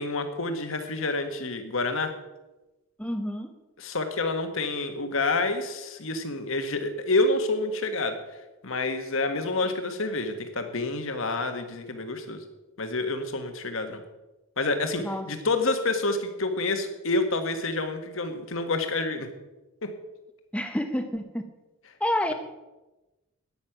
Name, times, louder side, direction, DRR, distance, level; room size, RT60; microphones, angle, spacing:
voice 1, 0.0-2.1 3.8-8.2 8.6-12.4 12.8-14.0 14.6-19.3 19.8-19.9, left 2 dB, 70° left, 7 dB, 1.6 m, -28 dB
voice 2, 3.0-3.5 15.0-15.3 20.5-21.5 22.0-22.3, left 1 dB, 5° left, 7 dB, 0.8 m, -29 dB
13.0 x 9.6 x 5.9 m, 1.0 s
head